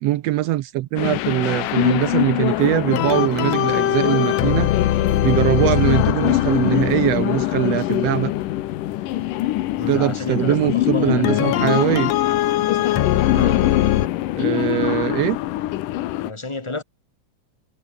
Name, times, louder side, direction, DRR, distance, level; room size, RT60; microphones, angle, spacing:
voice 1, 0.0-4.7 5.2-8.3 9.9-12.1 14.4-15.4, right 15 dB, 75° right, 1.5 m, -21 dB
sound 1, 1.0-16.3, left 15 dB, 85° left, 2.6 m, -24 dB
sound 2, 2.9-8.6 11.2-14.1, left 13 dB, 65° left, 2.0 m, -22 dB
voice 2, 9.8-11.8 13.3-13.8 16.2-16.8, left 2 dB, 10° left, 2.5 m, -31 dB
omnidirectional pair, 3.6 m